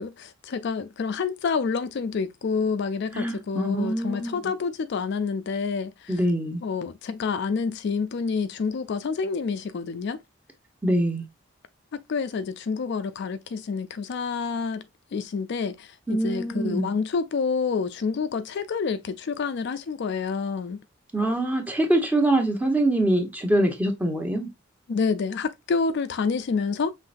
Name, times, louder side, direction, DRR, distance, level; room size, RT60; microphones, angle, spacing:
voice 1, 0.0-6.2 6.6-10.2 11.9-14.8 15.1-20.8 24.9-26.9, left 5 dB, 55° left, 0.4 m, -28 dB
voice 2, 3.1-4.3 6.1-6.6 10.8-11.2 16.1-16.9 21.1-24.5, right 1 dB, 10° right, 0.9 m, -24 dB
5.6 x 3.1 x 2.5 m
head